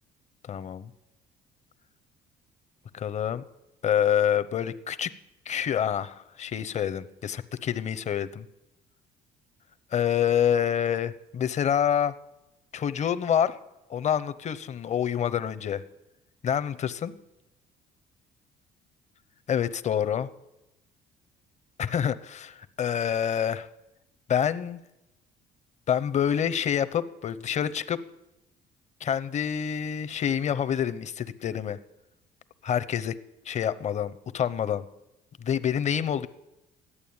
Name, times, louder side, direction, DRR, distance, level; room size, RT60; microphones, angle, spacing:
voice 1, 0.5-0.9 2.9-3.4 3.8-5.1 5.5-8.5 9.9-12.1 12.7-13.6 13.9-15.8 16.4-17.1 19.5-20.3 21.8-23.7 24.3-24.8 25.9-28.0 29.0-31.8 32.6-33.2 33.5-34.9 35.5-36.3, left 9 dB, 45° left, 13 dB, 0.8 m, -27 dB
14.5 x 11.0 x 8.8 m, 0.94 s
cardioid pair, 110°, 17 cm